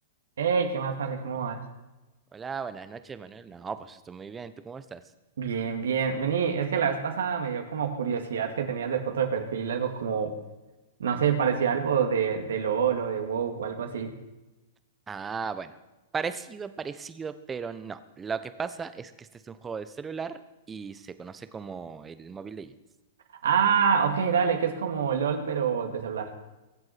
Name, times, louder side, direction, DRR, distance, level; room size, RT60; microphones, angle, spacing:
voice 1, 0.4-1.6 5.4-10.3 11.0-14.1 23.4-26.3, right 7 dB, 70° right, 5 dB, 2.3 m, -26 dB
voice 2, 2.3-5.0 15.1-15.8 16.1-20.4 20.7-22.7, right 5 dB, 15° right, 12 dB, 1.1 m, -36 dB
23.0 x 7.9 x 6.0 m, 1.1 s
figure-of-eight pair, 105°, 0 cm